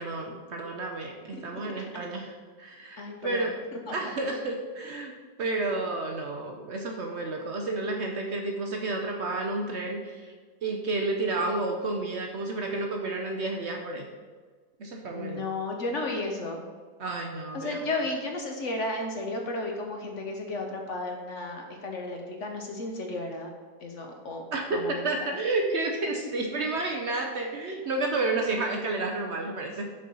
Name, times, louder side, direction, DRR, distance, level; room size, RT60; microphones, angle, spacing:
voice 1, 0.0-3.6 3.9-5.1 5.4-10.3 10.6-14.1 14.8-15.4 17.0-17.9 24.5-29.8, right 2 dB, 60° right, 2 dB, 0.7 m, -31 dB
voice 2, 3.0-3.5 3.9-4.0 15.1-16.6 17.5-23.5 23.8-24.4 24.7-25.0, left 2 dB, 55° left, 2 dB, 0.9 m, -33 dB
6.4 x 4.4 x 5.3 m, 1.5 s
omnidirectional pair, 1.9 m